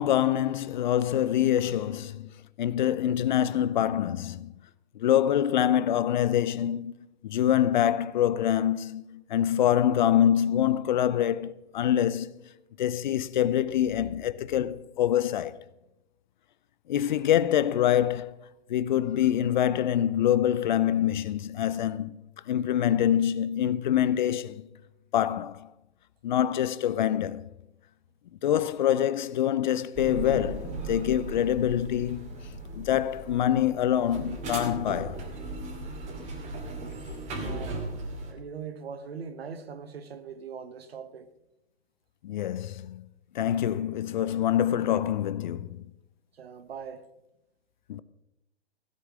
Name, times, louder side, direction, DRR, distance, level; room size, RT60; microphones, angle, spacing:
voice 1, 0.0-2.3 2.6-4.5 4.9-6.9 7.2-12.3 12.8-15.6 16.9-22.2 22.5-24.6 25.1-25.7 26.2-27.5 28.4-32.3 32.8-35.2 42.2-43.1 43.3-45.8 47.9-48.0, left 11 dB, 45° left, 0.6 m, -25 dB
sound 1, 29.9-38.3, right 2 dB, 20° right, 2.6 m, -37 dB
voice 2, 37.3-37.8 38.2-41.3 46.3-47.1, right 6 dB, 65° right, 1.5 m, -41 dB
16.0 x 8.0 x 6.2 m
hypercardioid pair, 135°, 32 cm